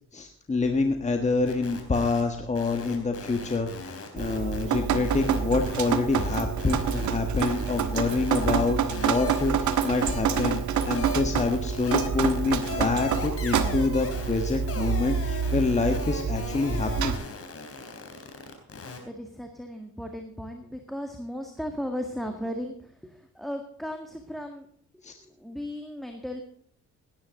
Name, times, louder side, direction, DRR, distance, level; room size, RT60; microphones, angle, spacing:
voice 1, 0.1-17.1 25.0-25.1, left 3 dB, 25° left, 5 dB, 1.5 m, -27 dB
sound 1, 1.5-2.2 2.5-4.6 4.9-8.7 8.9-19.0, left 3 dB, 50° left, 3.8 m, -39 dB
Drip, 4.2-17.2, right 7 dB, 70° right, 1.4 m, -28 dB
voice 2, 19.0-24.7 24.9-26.4, equal, ahead, 4 dB, 1.8 m, -36 dB
17.5 x 10.0 x 3.8 m, 0.62 s
cardioid pair, 90°, 30 cm